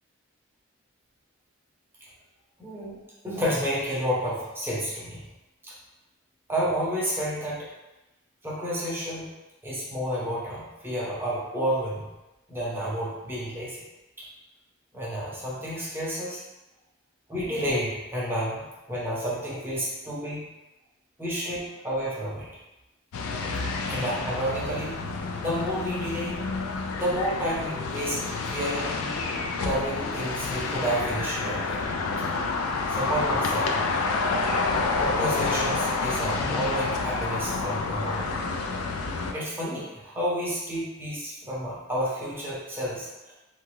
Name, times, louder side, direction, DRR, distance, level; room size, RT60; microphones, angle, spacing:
voice 1, 2.6-5.2 5.6-5.7 6.5-7.7 8.4-9.3 9.6-12.0 12.5-13.8 14.2-14.3 14.9-16.4 17.3-20.5 21.2-22.5 23.9-25.0 25.4-26.4 27.0-28.2 28.5-28.9 29.6-31.8 32.9-33.7 35.0-38.3 39.3-43.3, equal, 10° right, -7 dB, 0.8 m, -30 dB
sound 1, 23.1-39.3, left 3 dB, 80° left, 0.4 m, -29 dB
2.7 x 2.3 x 3.2 m, 1.0 s
head